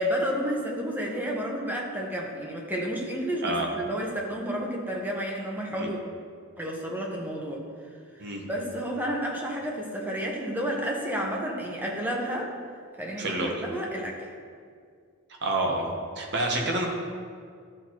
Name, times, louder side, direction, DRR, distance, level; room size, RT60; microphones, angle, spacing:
voice 1, 0.0-6.0 6.6-7.6 8.5-12.5 13.0-14.3, equal, 10° right, -2 dB, 1.0 m, -31 dB
voice 2, 13.2-13.6 15.4-16.8, right 2 dB, 55° right, 0 dB, 1.1 m, -28 dB
12.5 x 4.4 x 3.0 m, 2.1 s
head